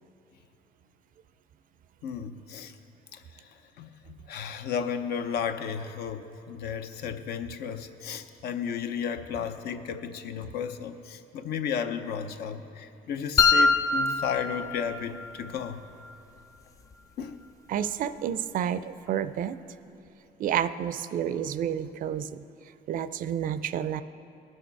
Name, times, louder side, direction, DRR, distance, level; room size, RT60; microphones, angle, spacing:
voice 1, 2.0-2.7 3.1-3.2 3.8-15.8 17.2-17.4, left 7 dB, 70° left, 9 dB, 0.6 m, -33 dB
sound 1, 13.4-15.4, left 4 dB, 20° left, 0.3 m, -23 dB
voice 2, 17.7-19.6 20.4-22.4 22.9-24.0, right 9 dB, 55° right, 14 dB, 0.4 m, -30 dB
18.0 x 6.4 x 4.6 m, 2.9 s
cardioid pair, 110°, 17 cm